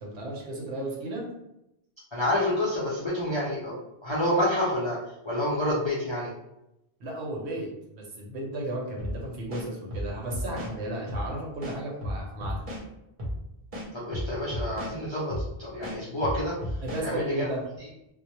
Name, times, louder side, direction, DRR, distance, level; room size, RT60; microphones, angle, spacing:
voice 1, 0.0-1.2 7.0-12.6 16.8-17.6, right 1 dB, 75° right, -1 dB, 0.9 m, -34 dB
voice 2, 2.1-6.3 13.9-16.8 17.0-17.5, left 1 dB, 45° left, -8 dB, 0.3 m, -28 dB
sound 1, 9.0-9.2 9.5-10.7 11.1-11.3 11.6-12.8 13.2-13.4 13.7-14.9 15.3-15.5 15.8-17.0, equal, 40° right, 0.6 m, -33 dB
2.2 x 2.0 x 2.9 m, 0.87 s
omnidirectional pair, 1.1 m